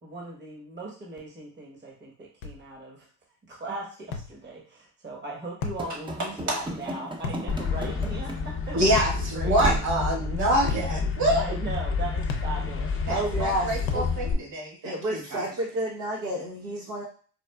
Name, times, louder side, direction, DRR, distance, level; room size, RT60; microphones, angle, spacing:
voice 1, 0.0-3.1 3.5-9.0 9.3-9.6 11.3-13.2, right 2 dB, 30° right, -1 dB, 1.0 m, -38 dB
sound 1, 2.4-2.6 4.1-4.4 5.6-5.9 7.2-7.5 9.0-9.2 10.7-10.9 12.3-12.6 13.9-14.1, left 5 dB, 85° left, 0.6 m, -33 dB
Run / Slam, 5.8-8.7 8.9-9.1 9.6-10.1, right 1 dB, 15° right, 0.6 m, -33 dB
sound 2, 7.5-14.3, left 5 dB, 35° left, 0.6 m, -29 dB
voice 2, 8.7-11.4 13.1-15.2, right 1 dB, 50° right, -2 dB, 1.7 m, -26 dB
voice 3, 13.1-14.1 14.8-17.0, right 1 dB, 75° right, -4 dB, 1.0 m, -30 dB
4.2 x 2.4 x 2.2 m, 0.41 s
supercardioid pair, 75°, 36 cm